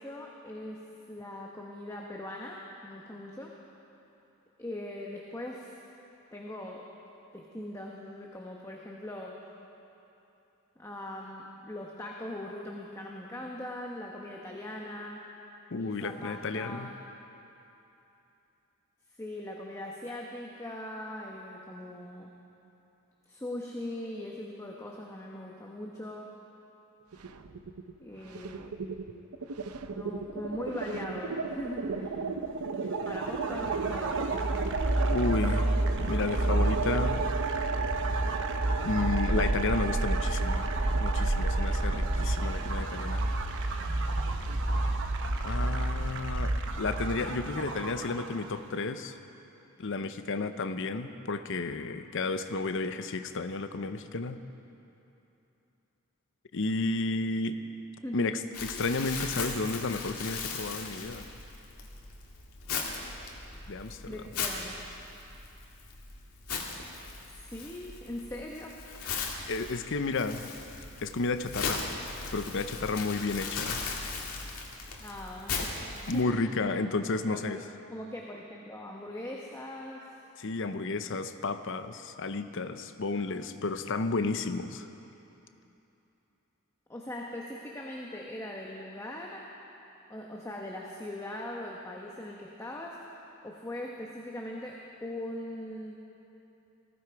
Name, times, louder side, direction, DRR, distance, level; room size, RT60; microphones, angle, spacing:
voice 1, 0.0-3.6 4.6-5.7 6.3-6.9 7.3-9.4 10.8-15.2 15.8-17.0 19.2-22.3 23.3-26.4 28.0-28.8 29.9-32.1 32.8-34.4 58.0-58.4 58.7-58.8 64.1-64.8 67.2-68.8 69.1-69.4 75.0-76.5 77.3-77.6 77.9-80.1 86.9-89.5 90.1-96.0, left 1 dB, 15° left, -2 dB, 1.0 m, -41 dB
voice 2, 15.7-16.9 35.1-35.7 36.0-37.2 38.8-43.2 45.4-49.2 49.8-54.4 56.5-57.6 58.1-61.3 63.7-64.2 69.5-70.5 71.0-71.8 72.3-73.8 76.1-77.6 80.4-84.9, left 3 dB, 60° left, 10 dB, 0.7 m, -32 dB
sound 1, 27.1-27.9 28.2-46.2, right 5 dB, 85° right, 0.7 m, -36 dB
sound 2, 32.9-48.6, right 1 dB, 55° right, 1.0 m, -30 dB
Crumpling crinkling, 58.5-76.2, left 4 dB, 90° left, 1.9 m, -38 dB
19.5 x 15.5 x 4.7 m, 2.9 s
head